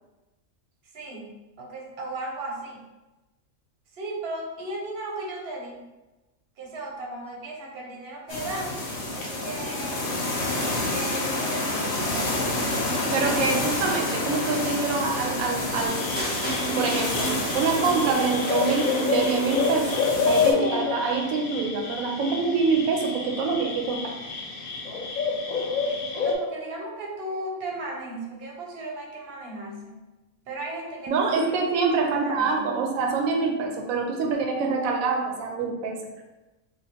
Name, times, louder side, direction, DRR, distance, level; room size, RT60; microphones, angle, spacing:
voice 1, 0.9-2.8 4.0-5.9 6.6-8.8 9.1-10.1 10.9-12.9 26.2-29.9 30.5-31.4 32.1-32.6, right 2 dB, 50° right, -1 dB, 0.9 m, -36 dB
sound 1, 8.3-20.5, left 2 dB, 60° left, 0.9 m, -29 dB
voice 2, 13.1-16.1 16.8-17.3 17.5-20.0 20.3-24.1 31.1-36.0, right 4 dB, 80° right, 1 dB, 1.0 m, -25 dB
Barred Owl Calling, 15.9-26.3, left 4 dB, 85° left, 1.1 m, -29 dB
sound 2, 16.2-20.4, right 2 dB, 15° left, 0.4 m, -32 dB
3.0 x 2.2 x 4.2 m, 1.1 s
omnidirectional pair, 1.5 m